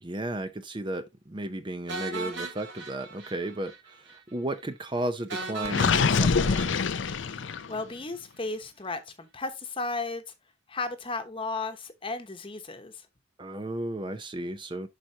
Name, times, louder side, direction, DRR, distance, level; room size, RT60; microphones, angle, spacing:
voice 1, 0.0-6.9 13.4-14.9, right 1 dB, 25° right, 0.6 m, -34 dB
sound 1, 1.9-3.8 4.1-4.2 4.5-4.6 5.3-7.6, right 3 dB, 65° right, 2.5 m, -38 dB
Gurgling, 5.7-7.8, left 5 dB, 70° left, 0.5 m, -25 dB
voice 2, 7.2-10.2 10.7-13.1, left 3 dB, 25° left, 1.1 m, -35 dB
11.0 x 4.4 x 2.8 m
head